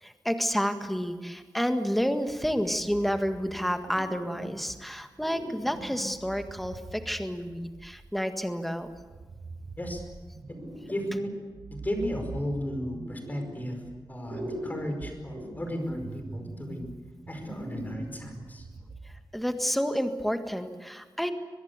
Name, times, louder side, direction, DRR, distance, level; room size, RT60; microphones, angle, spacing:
voice 1, 0.0-8.9 19.1-21.3, equal, ahead, 7 dB, 1.7 m, -30 dB
sound 1, 2.8-3.6 3.8-4.8 5.2-8.0 8.9-11.2 11.5-14.0 14.2-19.2, right 2 dB, 90° right, 5.4 m, -42 dB
voice 2, 10.9-11.3 11.7-16.9 17.3-18.6, equal, 20° left, 4 dB, 5.1 m, -34 dB
23.5 x 21.0 x 8.2 m, 1.4 s
wide cardioid pair, 145°, 8 cm